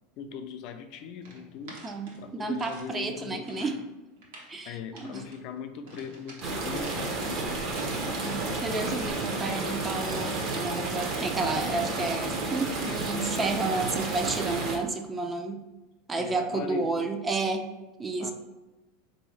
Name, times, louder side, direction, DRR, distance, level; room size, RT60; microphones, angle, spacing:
voice 1, 0.2-1.8 2.2-3.8 4.6-7.6 7.8-8.5 16.2-17.1 18.2-18.3, left 6 dB, 55° left, 7 dB, 0.4 m, -40 dB
sound 1, 1.2-2.9 3.2-3.8 4.2-4.6 4.9-5.4 5.9-8.0 8.3-12.3 12.7-13.1, right 2 dB, 75° right, 1.0 m, -48 dB
voice 2, 2.4-3.8 4.5-5.2 8.2-15.6 16.1-17.6 18.0-18.3, right 3 dB, 20° right, 5 dB, 0.4 m, -31 dB
sound 2, 6.4-14.8, right 2 dB, 45° right, 0.7 m, -31 dB
3.8 x 2.7 x 3.2 m, 1.1 s
supercardioid pair, 120°, 0 cm